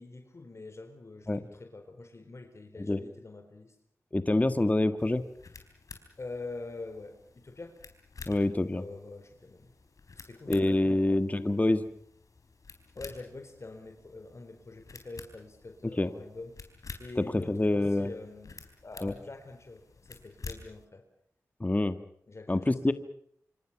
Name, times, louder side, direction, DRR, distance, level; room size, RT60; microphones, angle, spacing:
voice 1, 0.0-3.8 6.2-7.2 7.4-7.8 8.7-9.7 10.2-11.3 12.9-16.6 17.0-21.0 22.3-22.9, left 3 dB, 50° left, 6 dB, 4.2 m, -45 dB
voice 2, 4.1-5.2 8.3-8.8 10.5-11.8 16.0-16.1 17.2-18.1 19.0-19.1 21.6-22.0 22.5-22.9, left 2 dB, 25° left, 10 dB, 1.7 m, -26 dB
sound 1, 5.0-20.9, left 4 dB, 65° left, 4.1 m, -50 dB
26.5 x 26.0 x 6.0 m, 0.65 s
cardioid pair, 50°, 6 cm